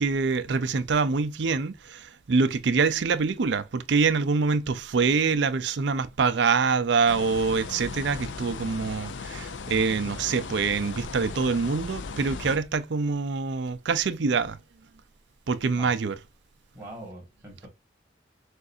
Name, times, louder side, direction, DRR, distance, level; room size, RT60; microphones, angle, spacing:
voice 1, 0.0-14.6 15.5-16.2, right 4 dB, 70° right, 0.5 m, -25 dB
sound 1, 7.1-12.6, left 4 dB, 75° left, 0.5 m, -37 dB
voice 2, 16.7-17.7, right 1 dB, 15° right, 1.8 m, -43 dB
6.4 x 2.5 x 2.7 m
head